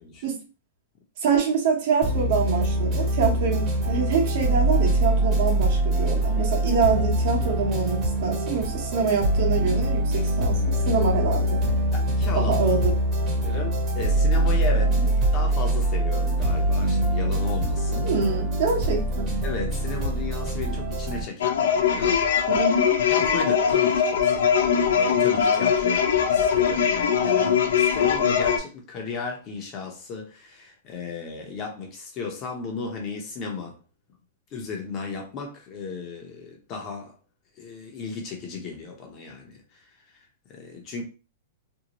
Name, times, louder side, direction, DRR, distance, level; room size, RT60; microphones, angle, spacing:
voice 1, 1.2-11.6 12.3-12.9 14.9-15.0 18.0-19.3 22.5-23.0, right 5 dB, 55° right, 0.9 m, -25 dB
sound 1, 2.0-21.2, right 1 dB, 30° right, 0.9 m, -23 dB
voice 2, 11.9-12.6 13.4-18.1 19.4-22.3 23.1-33.8 34.5-37.1 37.6-39.8 40.5-41.0, left 4 dB, 30° left, 0.7 m, -35 dB
sound 2, 21.4-28.6, left 7 dB, 75° left, 0.5 m, -21 dB
2.7 x 2.1 x 2.9 m
hypercardioid pair, 150°, 0 cm